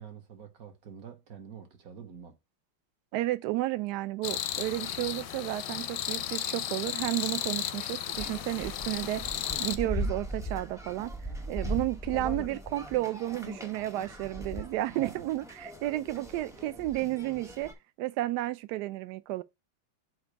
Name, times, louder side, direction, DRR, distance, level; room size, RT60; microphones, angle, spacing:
voice 1, 0.0-2.4 14.9-15.2, right 7 dB, 55° right, 1.2 m, -47 dB
voice 2, 3.1-9.3 9.6-11.1 11.5-17.7 18.0-19.4, right 16 dB, 75° right, 0.9 m, -32 dB
sound 1, 4.2-9.8, left 11 dB, 85° left, 1.4 m, -34 dB
sound 2, 8.1-17.7, right 1 dB, 5° right, 0.4 m, -39 dB
7.9 x 2.7 x 5.0 m
omnidirectional pair, 2.2 m